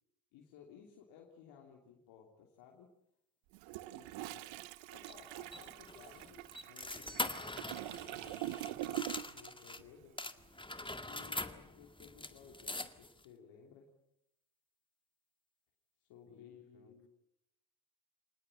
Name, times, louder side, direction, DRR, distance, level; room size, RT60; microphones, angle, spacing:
voice 1, 0.3-2.9 3.9-4.5 4.9-10.2 10.8-13.9 16.0-17.1, left 7 dB, 80° left, 0 dB, 3.2 m, -58 dB
Toilet flush, 3.5-9.5 9.8-10.0, right 15 dB, 80° right, 1.0 m, -44 dB
sound 1, 5.1-9.8 10.2-13.2, left 2 dB, 10° left, 2.0 m, -43 dB
voice 2, 16.3-17.1, left 6 dB, 65° left, 5 dB, 4.4 m, -64 dB
25.0 x 19.0 x 9.0 m, 0.83 s
hypercardioid pair, 50°, 46 cm